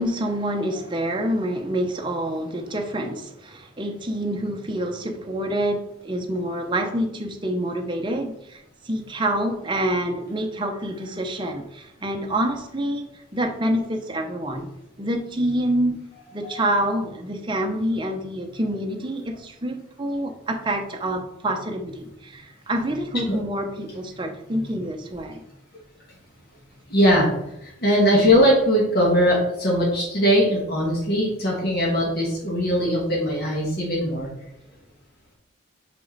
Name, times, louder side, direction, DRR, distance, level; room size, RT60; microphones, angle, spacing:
voice 1, 0.0-14.7 15.0-16.1 16.3-25.4, right 1 dB, 25° right, 3 dB, 0.7 m, -27 dB
voice 2, 26.9-27.3 27.6-34.3, equal, 50° left, -3 dB, 1.5 m, -20 dB
5.4 x 5.2 x 4.0 m, 0.81 s
head